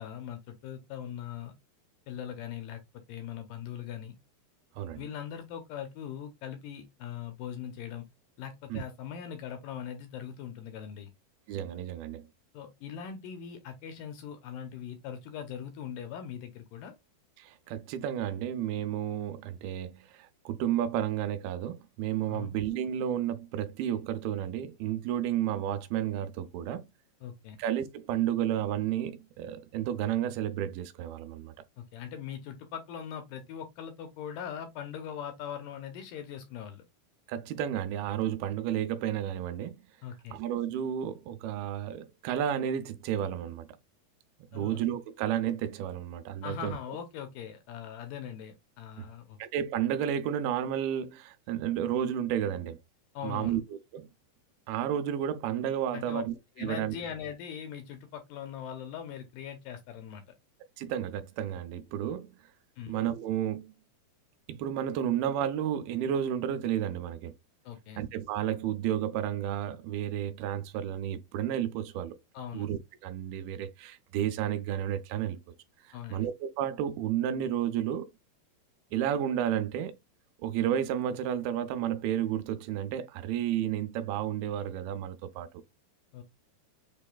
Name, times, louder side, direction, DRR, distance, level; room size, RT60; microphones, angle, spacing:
voice 1, 0.0-1.5 2.1-4.1 4.9-8.0 8.4-11.1 12.5-16.9 22.3-22.5 27.2-27.6 31.8-36.8 40.0-40.4 44.5-44.8 46.4-49.4 53.1-53.6 55.9-56.2 56.6-60.2 62.8-63.0 67.7-68.0 72.3-72.7 75.9-76.3 86.1-86.2, left 9 dB, 75° left, 2.1 m, -41 dB
voice 2, 11.5-12.3 17.4-26.9 27.6-31.5 37.3-39.8 40.3-43.7 44.5-46.8 49.0-49.1 49.4-52.8 53.2-54.1 54.7-56.3 56.6-57.0 60.8-62.4 62.9-63.7 64.5-67.3 68.0-72.2 72.5-75.4 75.8-78.1 78.9-80.0 80.4-85.5, right 10 dB, 80° right, 2.5 m, -32 dB
6.6 x 3.1 x 2.3 m
omnidirectional pair, 4.5 m